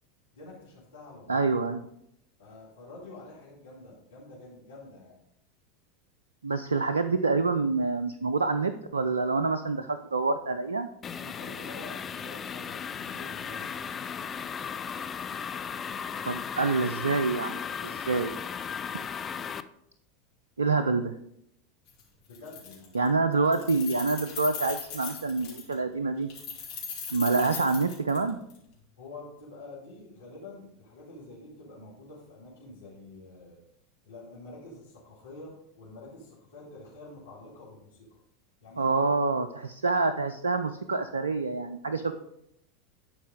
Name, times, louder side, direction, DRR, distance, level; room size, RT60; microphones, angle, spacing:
voice 1, 0.3-1.4 2.4-5.1 11.2-14.0 22.3-23.1 29.0-33.6 34.1-38.2 38.6-39.1 41.8-42.1, left 2 dB, 75° left, -7 dB, 2.5 m, -47 dB
voice 2, 1.3-1.8 6.4-10.9 16.2-18.3 20.6-21.1 22.9-26.3 27.1-28.4 38.8-42.1, right 3 dB, 80° right, 10 dB, 0.4 m, -27 dB
sound 1, 11.0-19.6, left 7 dB, 25° left, 0.4 m, -36 dB
Keys jangling, 21.9-22.0 22.3-23.1 23.3-25.7 26.3-28.6, left 6 dB, 55° left, 2.8 m, -39 dB
11.0 x 4.7 x 3.7 m, 0.76 s
figure-of-eight pair, 85°, 0 cm